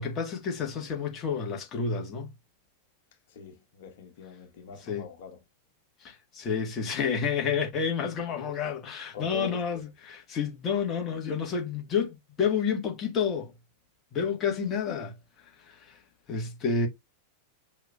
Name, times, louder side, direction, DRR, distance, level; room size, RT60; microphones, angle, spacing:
voice 1, 0.0-2.3 4.8-5.1 6.0-13.5 14.1-16.0 16.3-16.9, left 6 dB, 30° left, 1.3 m, -30 dB
voice 2, 3.3-5.4 9.1-9.6, left 6 dB, 55° left, 1.5 m, -43 dB
6.2 x 3.7 x 2.2 m
figure-of-eight pair, 90°, 0 cm